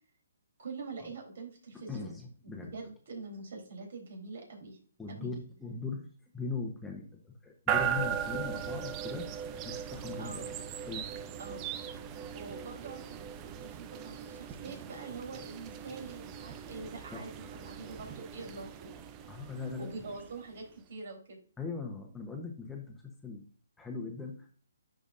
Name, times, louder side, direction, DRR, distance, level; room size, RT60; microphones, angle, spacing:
voice 1, 0.6-2.2 2.4-4.8 5.1-5.3 10.2-10.5 11.4-11.7 12.3-13.2 13.6-18.9 19.8-21.4, right 3 dB, 60° right, 1 dB, 3.8 m, -44 dB
voice 2, 1.7-2.8 5.0-6.1 6.3-9.3 9.6-10.4 10.9-11.1 17.1-17.3 19.3-19.9 21.6-23.4 23.8-24.5, left 4 dB, 5° left, 1 dB, 1.0 m, -40 dB
sound 1, 7.7-20.7, right 8 dB, 25° right, 0.6 m, -38 dB
11.0 x 5.0 x 2.6 m, 0.43 s
hypercardioid pair, 150°, 0 cm